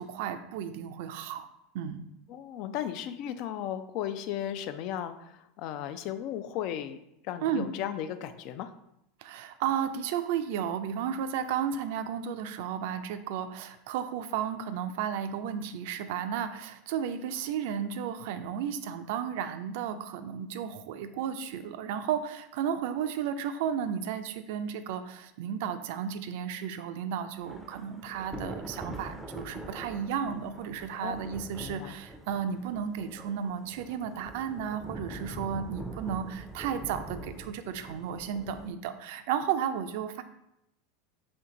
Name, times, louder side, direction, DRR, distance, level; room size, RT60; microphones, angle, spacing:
voice 1, 0.0-1.4 1.7-2.1 7.4-7.7 9.2-40.2, right 8 dB, 65° right, 9 dB, 0.4 m, -33 dB
voice 2, 2.3-7.0 7.2-8.7 31.0-31.2 31.6-31.9, left 10 dB, 55° left, 11 dB, 0.3 m, -35 dB
Thunder / Rain, 27.4-38.7, right 1 dB, ahead, 0.5 m, -44 dB
4.4 x 2.7 x 3.8 m, 0.82 s
hypercardioid pair, 90°, 0 cm